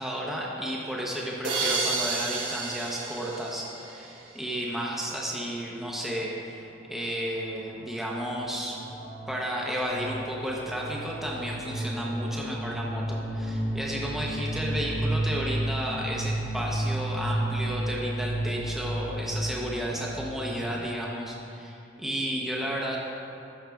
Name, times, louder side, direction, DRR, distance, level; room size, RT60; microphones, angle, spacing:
voice 1, 0.0-8.8 9.3-23.0, equal, ahead, -4 dB, 0.7 m, -32 dB
sound 1, 1.4-4.3, right 3 dB, 90° right, 1.1 m, -31 dB
sound 2, 7.4-7.6 7.9-20.7, right 1 dB, 70° left, 1.7 m, -32 dB
13.5 x 5.6 x 2.3 m, 2.7 s
head